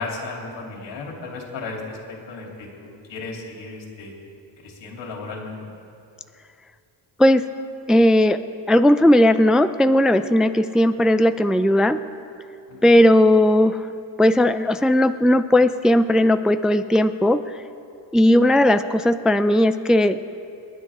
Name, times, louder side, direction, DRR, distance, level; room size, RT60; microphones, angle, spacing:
voice 1, 0.0-4.1 4.6-5.7 12.7-12.9, left 3 dB, 85° left, -2 dB, 3.3 m, -35 dB
voice 2, 7.9-8.4 8.7-12.0 12.8-13.9 14.2-17.4 18.1-20.2, left 1 dB, ahead, 10 dB, 0.3 m, -17 dB
28.5 x 10.0 x 3.6 m, 2.6 s
cardioid pair, 100°, 42 cm